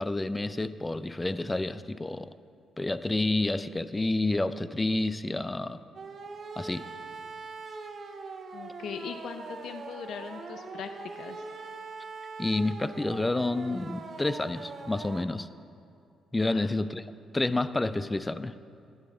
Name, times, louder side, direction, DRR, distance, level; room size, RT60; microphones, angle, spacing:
voice 1, 0.0-2.3 2.8-5.8 6.6-6.9 12.4-15.5 16.3-18.6, left 2 dB, 15° left, 14 dB, 0.4 m, -29 dB
sound 1, 5.9-15.2, right 4 dB, 50° right, 0.9 m, -42 dB
voice 2, 8.5-10.9 11.1-11.4 16.4-16.7, left 7 dB, 70° left, 7 dB, 0.6 m, -40 dB
12.5 x 10.5 x 4.0 m, 2.4 s
cardioid pair, 90°, 0 cm